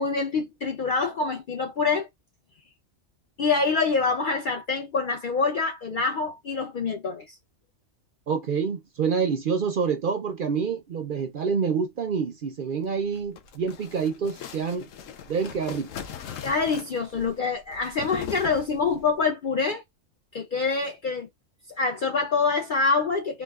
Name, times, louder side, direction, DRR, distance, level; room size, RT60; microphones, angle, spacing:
voice 1, 0.0-2.1 3.4-7.4 16.4-19.8 20.3-21.3 21.8-23.4, left 4 dB, 60° left, 0.5 m, -26 dB
voice 2, 8.3-14.9 15.3-15.9, right 6 dB, 55° right, 0.6 m, -27 dB
sound 1, 13.0-19.1, left 9 dB, 85° left, 1.0 m, -40 dB
3.8 x 2.6 x 2.3 m
omnidirectional pair, 1.3 m